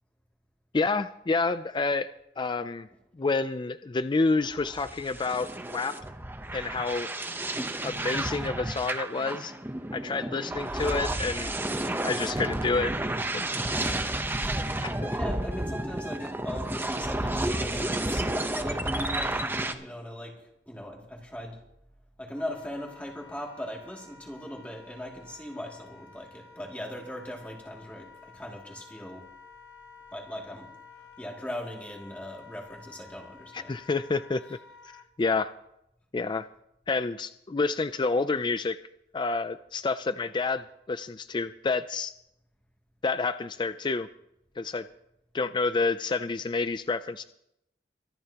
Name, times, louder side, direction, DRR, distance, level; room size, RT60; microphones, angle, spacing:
voice 1, 0.7-2.1 2.4-2.9 3.2-6.0 6.5-7.1 7.8-9.5 9.9-11.5 12.0-12.9 13.3-13.5 14.8-15.1 33.5-34.6 35.2-35.5 36.1-36.5 36.9-38.8 39.1-42.1 43.0-44.1 44.6-44.8 45.3-47.2, left 3 dB, 25° left, 12 dB, 0.4 m, -29 dB
sound 1, 4.5-19.7, right 1 dB, 10° right, 0.9 m, -31 dB
voice 2, 13.7-14.0 15.1-18.2 18.5-20.4 20.7-21.6 22.2-29.2 30.1-30.7 31.2-33.8, equal, 10° left, -1 dB, 2.5 m, -39 dB
Wind instrument woodwind instrument, 22.3-35.1, left 5 dB, 90° left, 1.5 m, -52 dB
25.0 x 12.5 x 2.9 m, 0.80 s
head